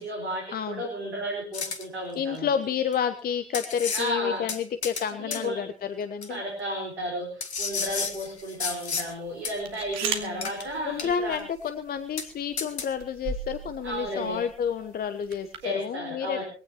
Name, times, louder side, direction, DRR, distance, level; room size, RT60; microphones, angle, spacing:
voice 1, 0.0-2.5 3.9-4.5 5.2-5.6 6.3-11.4 13.8-14.4 15.6-16.4, equal, 75° right, 0 dB, 4.6 m, -33 dB
voice 2, 0.5-0.9 2.1-6.4 10.0-10.5 10.8-16.4, left 7 dB, 30° left, 10 dB, 1.1 m, -30 dB
sound 1, 1.5-1.8 2.9-3.0 3.5-4.1 4.5-5.1 5.3-5.4 6.2-6.3 7.4-9.1 9.4-9.5 10.4-10.6 11.0-11.4 11.7-11.8 12.2-12.3 12.6-12.9, left 5 dB, 75° left, 1.9 m, -32 dB
sound 2, 7.6-15.7, right 6 dB, 50° right, 2.8 m, -40 dB
22.0 x 17.0 x 3.0 m, 0.39 s
figure-of-eight pair, 75°, 33 cm